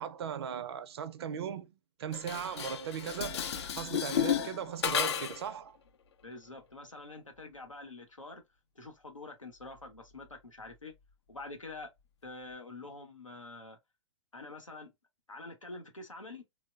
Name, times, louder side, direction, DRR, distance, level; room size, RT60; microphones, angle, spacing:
voice 1, 0.0-3.4 3.8-5.8, right 8 dB, 55° right, 0.5 m, -38 dB
Dishes pots and pans, 2.1-5.5, left 9 dB, 60° left, 0.5 m, -33 dB
voice 2, 6.2-8.4 8.8-10.9 11.3-11.9 12.2-13.8 14.3-14.9 15.3-16.4, left 3 dB, 90° left, 0.8 m, -46 dB
3.1 x 2.1 x 2.3 m
figure-of-eight pair, 110°, 16 cm